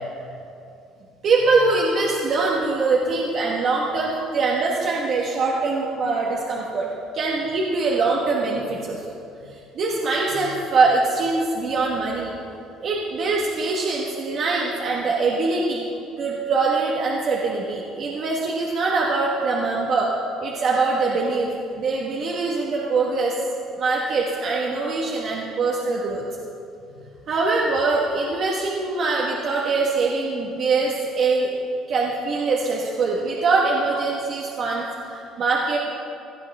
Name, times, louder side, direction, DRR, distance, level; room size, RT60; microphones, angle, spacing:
voice 1, 1.2-6.9 7.1-12.3 12.8-15.8 16.2-20.1 20.4-21.5 21.8-23.4 23.8-26.2 27.3-31.6 31.9-35.8, right 3 dB, 50° right, -3 dB, 1.4 m, -23 dB
17.0 x 12.5 x 3.6 m, 2.6 s
cardioid pair, 130°, 0 cm